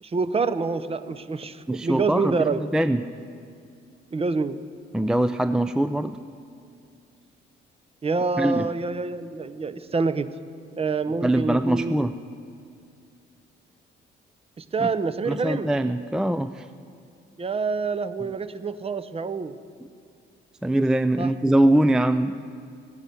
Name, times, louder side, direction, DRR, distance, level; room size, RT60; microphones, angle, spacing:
voice 1, 0.0-2.6 4.1-4.6 8.0-10.3 10.8-12.0 14.6-15.7 17.4-19.6 21.2-21.3, right 4 dB, 30° right, 13 dB, 0.7 m, -27 dB
voice 2, 1.7-3.1 4.9-6.2 8.4-8.7 11.2-12.2 14.8-14.9 15.3-16.7 20.6-22.5, right 1 dB, 5° right, 11 dB, 0.3 m, -22 dB
16.0 x 9.9 x 6.8 m, 2.4 s
cardioid pair, 90°, 20 cm